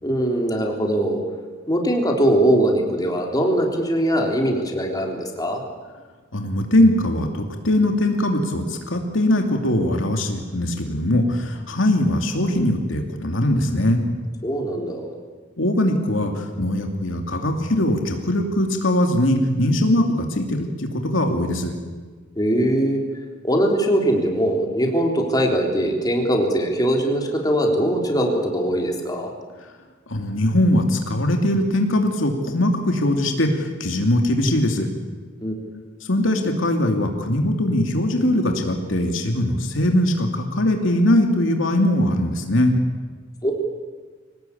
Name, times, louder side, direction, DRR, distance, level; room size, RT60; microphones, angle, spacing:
voice 1, 0.0-1.2 1.7-5.6 14.4-15.1 22.4-23.0 23.4-29.3 35.4-35.5 43.4-43.5, right 1 dB, 20° left, 1 dB, 3.6 m, -21 dB
voice 2, 6.3-14.0 15.6-21.7 30.1-34.9 36.1-42.7, left 1 dB, 80° left, 3 dB, 2.6 m, -21 dB
24.0 x 18.5 x 8.7 m, 1.4 s
head